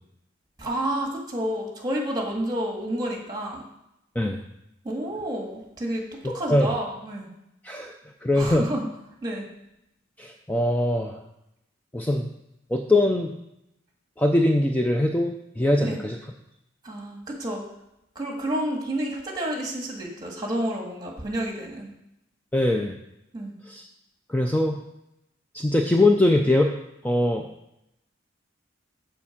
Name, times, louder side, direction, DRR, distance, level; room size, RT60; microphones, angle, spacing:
voice 1, 0.6-3.7 4.8-7.3 8.3-8.9 9.2-9.5 15.8-16.0 16.8-17.6 18.2-21.9 23.3-23.6, right 1 dB, 20° right, 0 dB, 1.9 m, -30 dB
voice 2, 8.2-8.6 10.2-11.2 11.9-12.3 12.7-13.3 14.2-16.2 22.5-23.0 23.7-23.8 24.3-24.8 25.5-26.8 27.0-27.5, left 1 dB, 10° left, 2 dB, 0.5 m, -22 dB
6.9 x 5.2 x 7.2 m, 0.85 s
head